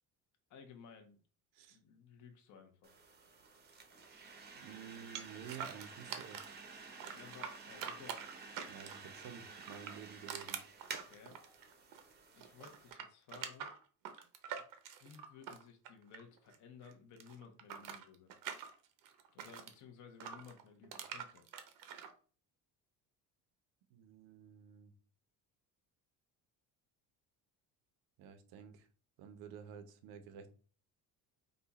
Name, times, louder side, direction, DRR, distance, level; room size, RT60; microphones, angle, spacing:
voice 1, 0.5-1.2 1.7-3.0 7.1-8.3 11.0-11.4 12.3-13.7 15.0-18.3 19.3-21.4, left 6 dB, 55° left, 5 dB, 1.0 m, -56 dB
sound 1, 2.8-12.9, right 4 dB, 25° right, 0.7 m, -52 dB
voice 2, 4.6-6.5 8.7-10.6 23.9-24.9 28.2-28.9 29.2-30.5, right 8 dB, 85° right, 8 dB, 1.0 m, -51 dB
sound 2, 5.2-6.6 7.0-9.1 9.6-12.1 12.4-16.6 16.8-19.7 20.2-22.1, right 8 dB, 60° right, 0.8 m, -46 dB
5.3 x 2.4 x 4.1 m, 0.39 s
cardioid pair, 175°, 36 cm